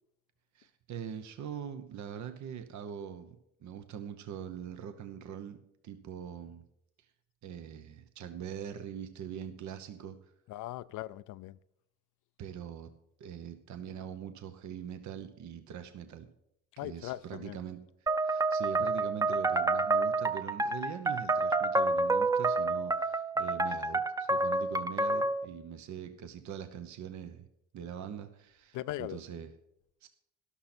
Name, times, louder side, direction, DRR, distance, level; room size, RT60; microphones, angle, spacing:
voice 1, 0.5-5.6 5.8-6.6 7.0-7.1 7.4-10.3 12.4-12.9 13.2-16.3 16.8-17.8 18.2-27.5 27.7-29.5 30.0-30.1, right 8 dB, 70° right, 0.9 m, -43 dB
voice 2, 10.5-11.6 16.8-17.6 28.7-29.2, left 15 dB, 85° left, 0.5 m, -39 dB
sound 1, 18.1-25.5, right 2 dB, 10° right, 0.6 m, -29 dB
12.5 x 11.5 x 4.3 m
cardioid pair, 90°, 30 cm